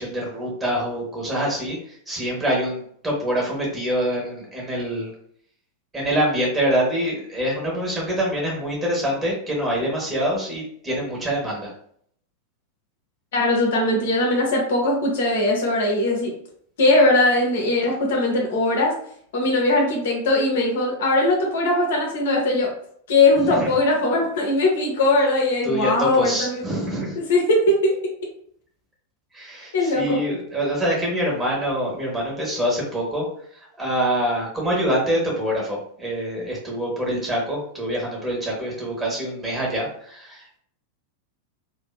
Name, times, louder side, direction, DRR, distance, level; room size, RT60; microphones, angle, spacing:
voice 1, 0.0-5.1 5.9-11.7 23.4-23.7 25.6-27.2 29.3-33.3 33.5-40.6, equal, 15° right, -3 dB, 1.0 m, -25 dB
voice 2, 13.3-16.3 16.8-18.9 19.3-22.7 23.1-26.6 27.2-27.9 29.7-30.2, left 2 dB, 60° left, -1 dB, 0.7 m, -20 dB
2.5 x 2.1 x 2.3 m, 0.63 s
figure-of-eight pair, 90°, 0 cm